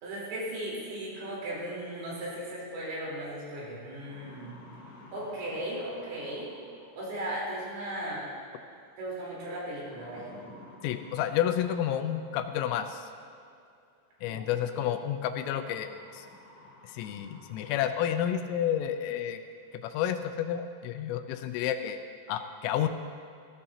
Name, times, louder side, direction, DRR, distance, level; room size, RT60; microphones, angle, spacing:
voice 1, 0.0-4.6 5.1-6.5 7.0-8.3 9.0-10.4 14.3-14.4 14.7-14.8, right 1 dB, 75° right, -6 dB, 6.4 m, -37 dB
sound 1, 3.2-3.3 3.8-7.2 8.6-9.0 9.8-12.6 13.8-13.9 15.4-18.3 18.8-18.9 19.4-19.5 19.8-20.3, left 2 dB, 45° left, 4.5 m, -53 dB
voice 2, 10.8-13.1 14.2-16.3 16.9-19.4 19.8-22.0 22.3-22.9, left 10 dB, 85° left, 8 dB, 3.1 m, -30 dB
18.5 x 15.0 x 2.8 m, 2.4 s
omnidirectional pair, 6.0 m